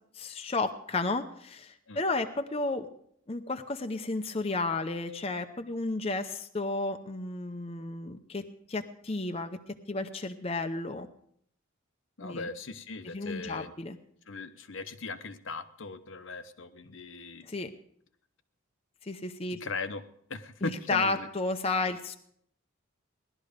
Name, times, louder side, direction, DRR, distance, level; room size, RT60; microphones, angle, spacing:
voice 1, 0.2-2.9 3.3-9.6 9.9-11.1 12.2-12.5 13.1-14.0 17.5-17.7 19.0-19.6 20.6-22.1, left 3 dB, 30° left, 6 dB, 0.7 m, -32 dB
voice 2, 12.2-13.7 14.3-17.5 19.6-20.0 20.3-21.3, left 3 dB, 65° left, 9 dB, 0.9 m, -39 dB
18.0 x 12.0 x 5.1 m, 0.68 s
head